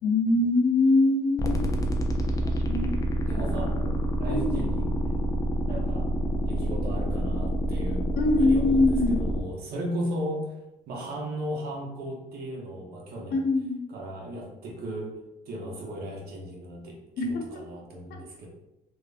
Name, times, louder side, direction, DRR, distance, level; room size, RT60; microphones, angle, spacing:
voice 1, 0.0-1.7 2.7-2.9 4.3-4.7 8.2-9.2 13.3-13.8 17.2-17.6 18.1-18.2, left 2 dB, 65° left, 3 dB, 0.6 m, -23 dB
sound 1, 1.4-9.4, right 1 dB, 20° left, 0.4 m, -27 dB
voice 2, 2.2-2.6 3.3-5.2 5.6-6.1 6.5-8.1 8.4-10.6 10.9-13.4 13.9-15.2 15.5-18.5, right 1 dB, 65° right, -2 dB, 0.7 m, -36 dB
3.2 x 2.1 x 2.5 m, 0.93 s
cardioid pair, 110°, 17 cm